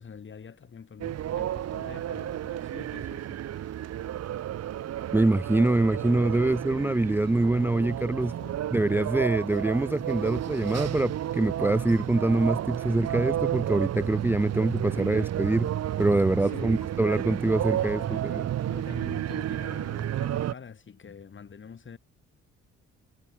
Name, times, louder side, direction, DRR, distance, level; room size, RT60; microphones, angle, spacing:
voice 1, 0.0-3.9 7.9-8.6 16.4-16.7 17.8-22.0, left 6 dB, 40° left, 3.3 m, -46 dB
sound 1, 1.0-20.5, right 11 dB, 55° right, 0.9 m, -32 dB
voice 2, 5.1-8.3 8.7-15.7 16.0-18.4, right 2 dB, 5° right, 0.5 m, -25 dB
cardioid pair, 90°, 30 cm